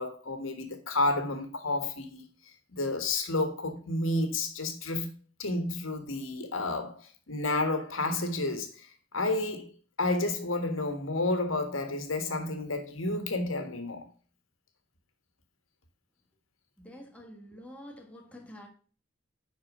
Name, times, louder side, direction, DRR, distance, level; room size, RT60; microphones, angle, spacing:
voice 1, 0.0-2.2 2.7-5.1 5.4-14.1, left 2 dB, 90° left, 1.6 m, -31 dB
voice 2, 16.8-18.7, equal, 5° left, 1.4 m, -47 dB
10.5 x 4.4 x 4.9 m
head